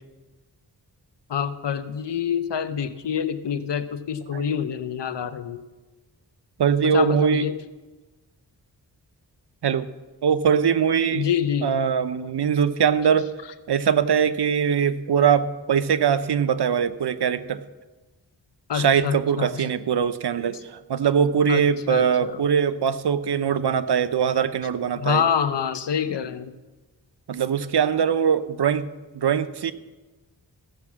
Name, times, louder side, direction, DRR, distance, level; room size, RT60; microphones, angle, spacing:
voice 1, 1.3-5.6 6.8-7.6 11.1-11.7 18.7-19.6 21.5-22.4 25.0-26.5, left 8 dB, 90° left, 12 dB, 0.8 m, -26 dB
voice 2, 6.6-7.4 9.6-9.9 10.2-11.3 11.6-13.3 13.7-17.6 18.7-25.2 27.3-28.9 29.1-29.7, right 7 dB, 70° right, 12 dB, 0.7 m, -22 dB
15.5 x 5.9 x 7.2 m, 1.2 s
cardioid pair, 55°, 41 cm